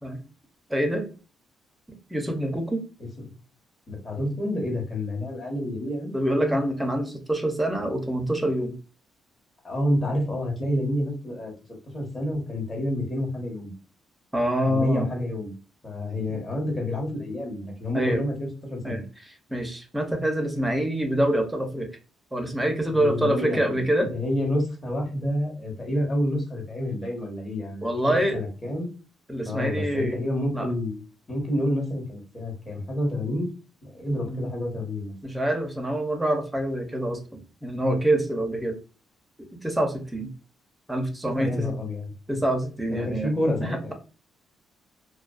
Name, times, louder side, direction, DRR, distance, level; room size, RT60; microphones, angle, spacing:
voice 1, 0.7-1.1 2.1-2.8 6.1-8.7 14.3-15.1 16.3-16.4 17.9-18.2 18.8-19.0 19.5-21.9 22.3-24.1 27.8-28.4 29.3-30.2 30.5-30.7 34.2-34.5 35.2-38.8 39.4-40.3 40.9-41.7 42.3-43.3 43.6-43.9, right 1 dB, 5° right, 4 dB, 0.6 m, -26 dB
voice 2, 3.0-3.3 3.9-6.1 6.4-6.5 9.6-11.5 11.9-13.7 14.6-15.5 15.8-19.0 22.9-23.8 24.1-28.9 29.5-31.0 31.3-33.5 33.8-35.1 41.2-42.4 42.9-43.9, left 1 dB, 30° left, -1 dB, 1.1 m, -29 dB
2.4 x 2.2 x 2.3 m, 0.35 s
cardioid pair, 90°, 0 cm